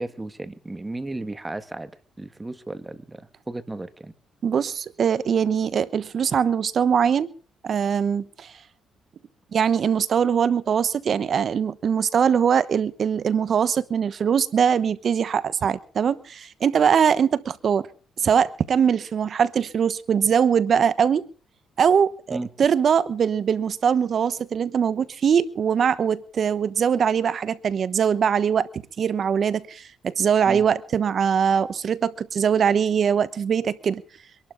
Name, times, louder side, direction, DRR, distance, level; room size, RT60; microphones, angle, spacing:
voice 1, 0.0-1.9 2.2-4.1 22.3-22.5 30.5-30.6, right 2 dB, 15° right, 1.7 m, -34 dB
voice 2, 4.4-7.3 7.6-8.5 9.5-17.9 18.2-21.3 21.8-28.7 29.0-34.0, right 7 dB, 55° right, 1.0 m, -22 dB
25.0 x 12.0 x 4.0 m
cardioid pair, 90°, 0 cm